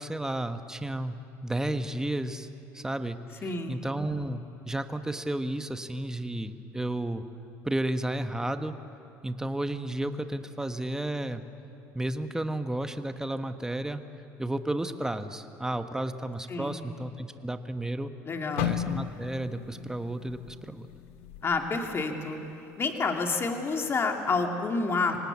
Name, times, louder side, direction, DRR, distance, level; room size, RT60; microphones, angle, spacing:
voice 1, 0.0-2.5 2.7-3.2 3.4-7.2 7.6-8.7 9.2-11.4 11.9-14.0 14.4-18.1 18.6-20.9, right 1 dB, 10° right, 8 dB, 1.3 m, -32 dB
voice 2, 3.4-3.8 16.5-16.8 18.2-18.7 21.4-22.4 22.8-25.2, left 4 dB, 35° left, 3 dB, 2.7 m, -29 dB
sound 1, 18.6-22.6 23.0-23.2 23.9-24.2, left 11 dB, 85° left, 1.1 m, -36 dB
25.5 x 19.0 x 8.3 m, 2.7 s
supercardioid pair, 80°, 7 cm